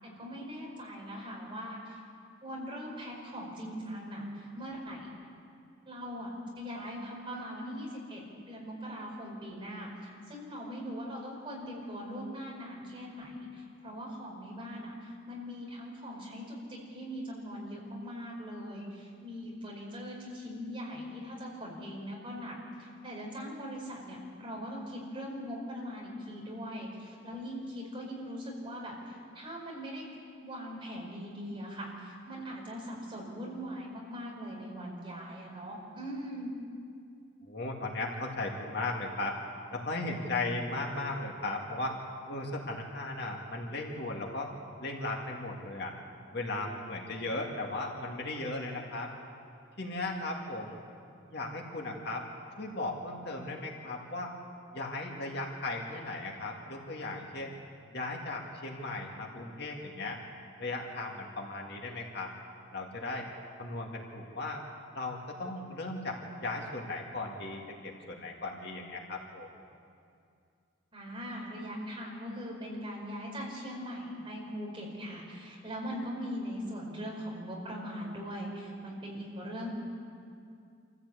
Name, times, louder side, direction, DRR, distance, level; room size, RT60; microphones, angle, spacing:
voice 1, 0.0-2.0 2.4-4.2 4.5-5.1 5.8-6.3 6.6-9.9 10.3-14.9 15.2-28.9 29.3-30.0 30.4-36.5 70.9-79.7, equal, 25° right, -3 dB, 5.0 m, -41 dB
voice 2, 37.5-39.4 39.7-42.0 42.3-44.5 44.8-45.9 46.3-49.1 49.8-50.8 51.3-52.3 52.6-54.3 54.7-57.5 57.9-60.2 60.6-62.3 62.7-63.3 63.6-64.6 64.9-69.5, left 2 dB, 55° left, 0 dB, 2.4 m, -36 dB
26.5 x 15.0 x 8.4 m, 2.4 s
head